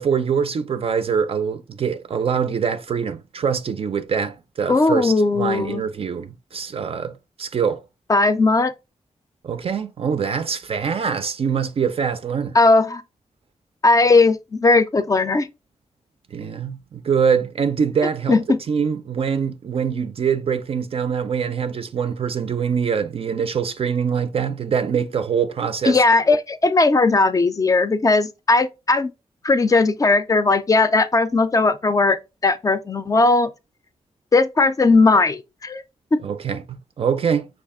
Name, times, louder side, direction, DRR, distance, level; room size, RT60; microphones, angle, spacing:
voice 1, 0.0-7.8 9.4-12.6 16.3-18.4 18.7-26.0 36.2-37.5, right 6 dB, 55° right, 0.4 m, -24 dB
voice 2, 4.7-5.8 8.1-8.7 12.5-13.0 13.8-15.5 18.3-18.6 25.9-29.1 29.4-32.2 32.4-33.5 34.3-35.8 36.1-36.2, left 3 dB, 30° left, 0.4 m, -17 dB
5.7 x 2.4 x 3.5 m
wide cardioid pair, 135°, 12 cm